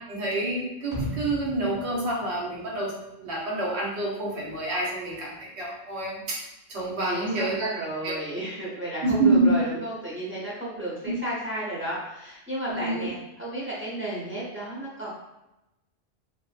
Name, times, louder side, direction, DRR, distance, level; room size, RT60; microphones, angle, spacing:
voice 1, 0.1-2.9 3.2-6.4 6.7-7.7 8.0-8.2 9.0-9.5 12.7-13.1, right 2 dB, 80° right, -4 dB, 1.0 m, -27 dB
sound 1, 0.9-3.1 3.4-3.5, equal, 40° left, 0.4 m, -37 dB
voice 2, 7.1-15.1, right 1 dB, 15° right, -7 dB, 0.4 m, -33 dB
2.6 x 2.2 x 2.3 m, 0.91 s
omnidirectional pair, 1.1 m